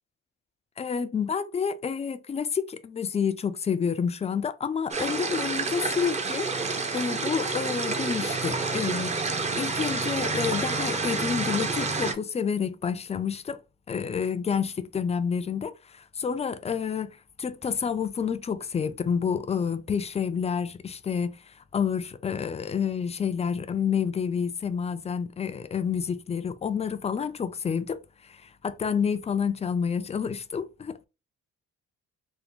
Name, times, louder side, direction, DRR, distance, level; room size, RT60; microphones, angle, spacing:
voice 1, 0.8-6.5 6.9-9.1 9.5-13.6 13.9-21.4 21.7-31.1, left 6 dB, 20° left, 0.3 m, -29 dB
sound 1, 4.9-12.1, right 3 dB, 25° right, 0.6 m, -29 dB
3.5 x 2.0 x 3.6 m
cardioid pair, 90°, 30 cm